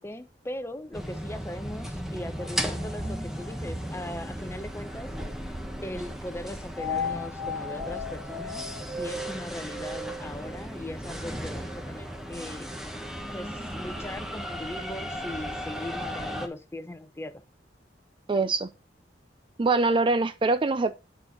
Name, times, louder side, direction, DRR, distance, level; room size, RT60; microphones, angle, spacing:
voice 1, 0.0-5.1 5.8-8.6 9.0-12.8 13.3-17.4, left 1 dB, 15° left, 0.8 m, -39 dB
sound 1, 0.9-16.5, left 1 dB, 5° right, 1.1 m, -35 dB
voice 2, 18.3-18.7 19.6-21.0, right 3 dB, 30° right, 0.4 m, -23 dB
8.9 x 4.4 x 5.2 m
head